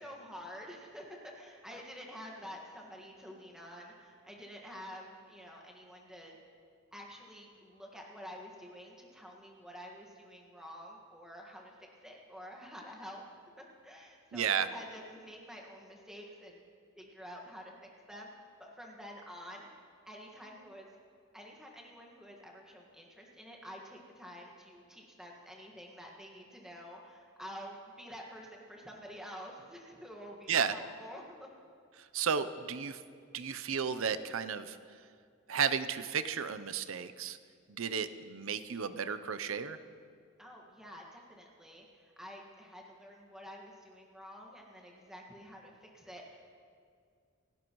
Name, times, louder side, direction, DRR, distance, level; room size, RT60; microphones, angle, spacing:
voice 1, 0.0-6.4 6.9-11.8 12.0-13.2 13.6-16.6 17.0-17.7 18.1-19.7 20.1-20.9 21.3-31.5 40.4-46.5, equal, 5° right, -1 dB, 1.6 m, -49 dB
voice 2, 14.3-14.7 30.5-30.7 32.0-33.0 33.3-34.8 35.5-37.4 37.7-39.8, right 7 dB, 70° right, 12 dB, 0.6 m, -33 dB
27.0 x 11.5 x 3.1 m, 2.2 s
head